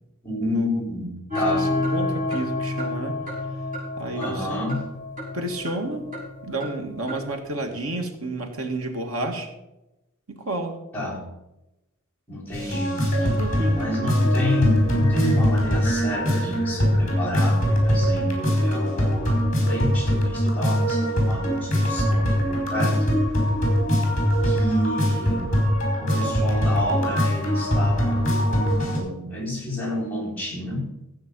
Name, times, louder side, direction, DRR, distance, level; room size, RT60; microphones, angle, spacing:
voice 1, 0.2-1.7 4.1-4.8 10.9-11.2 12.3-13.3 13.7-23.2 24.4-25.6 26.0-30.9, left 1 dB, 5° left, -5 dB, 4.2 m, -29 dB
sound 1, 1.3-7.3, left 2 dB, 35° right, 6.1 m, -29 dB
voice 2, 1.5-3.2 4.0-4.5 5.3-6.1 6.4-9.5 10.3-10.8 12.6-12.8 13.1-13.8, right 2 dB, 90° right, 4 dB, 2.0 m, -31 dB
sound 2, 12.5-29.0, equal, 35° left, 5.1 m, -22 dB
15.0 x 8.3 x 5.5 m, 0.94 s
head